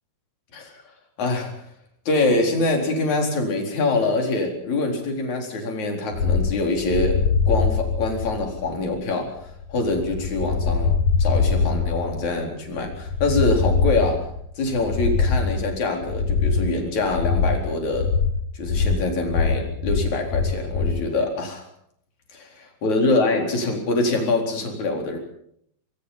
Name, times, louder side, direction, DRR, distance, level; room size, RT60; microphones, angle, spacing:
voice 1, 1.2-1.5 2.1-7.2 7.5-9.3 9.7-14.2 14.6-18.1 18.5-21.7 22.3-25.2, left 2 dB, 45° left, 2 dB, 5.2 m, -24 dB
sound 1, 6.1-21.0, left 5 dB, 65° left, 1.6 m, -23 dB
25.0 x 22.0 x 5.7 m, 0.69 s
omnidirectional pair, 5.0 m